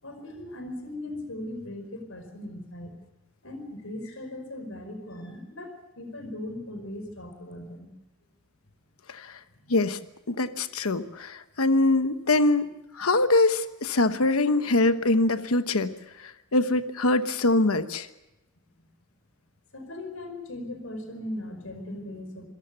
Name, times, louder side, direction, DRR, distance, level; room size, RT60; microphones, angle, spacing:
voice 1, 0.0-2.9 3.4-7.9 18.8-18.9 19.7-22.5, left 1 dB, 75° left, 7 dB, 5.0 m, -38 dB
voice 2, 9.1-9.4 9.7-10.0 10.3-18.1, left 2 dB, 90° left, 10 dB, 1.1 m, -24 dB
26.5 x 17.5 x 6.9 m, 0.96 s
head